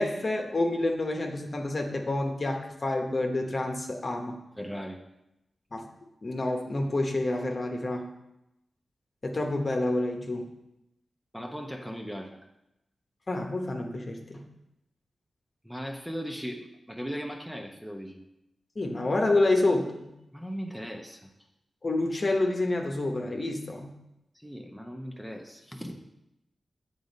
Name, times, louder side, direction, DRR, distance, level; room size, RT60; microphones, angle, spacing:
voice 1, 0.0-4.4 5.7-5.8 6.2-8.1 9.2-10.5 13.3-14.4 18.8-20.1 21.8-23.9, left 2 dB, 45° left, 2 dB, 1.1 m, -28 dB
voice 2, 4.6-5.0 11.3-12.4 15.6-18.2 20.3-21.3 24.3-26.0, equal, 5° right, 2 dB, 0.9 m, -38 dB
7.8 x 3.8 x 5.3 m, 0.88 s
cardioid pair, 50°, 0 cm